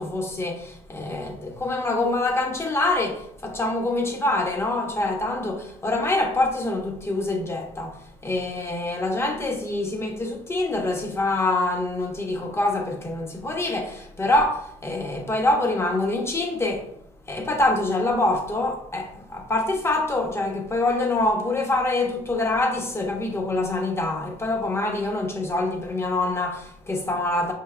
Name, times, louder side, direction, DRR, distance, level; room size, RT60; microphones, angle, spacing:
voice 1, 0.0-16.9 17.3-27.5, left 2 dB, 20° left, 1.0 m, -25 dB
5.1 x 3.7 x 2.2 m
cardioid pair, 90°, 13 cm